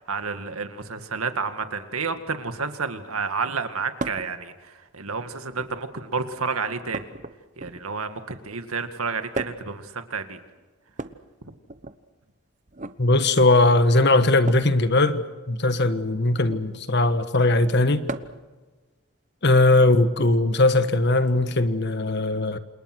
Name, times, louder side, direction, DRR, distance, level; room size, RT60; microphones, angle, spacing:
voice 1, 0.1-7.1 7.6-10.4, right 4 dB, 90° right, 2.2 m, -30 dB
sound 1, 4.0-4.3 5.4-5.9 6.9-8.0 9.3-9.8 10.9-12.0 12.7-13.0 14.4-14.8 16.3-16.7 18.1-18.5 19.9-20.0 21.3-21.4, right 2 dB, 35° right, 0.9 m, -35 dB
voice 2, 13.0-15.2 15.5-18.1 19.4-22.6, left 2 dB, 50° left, 1.5 m, -19 dB
29.0 x 27.5 x 6.4 m
head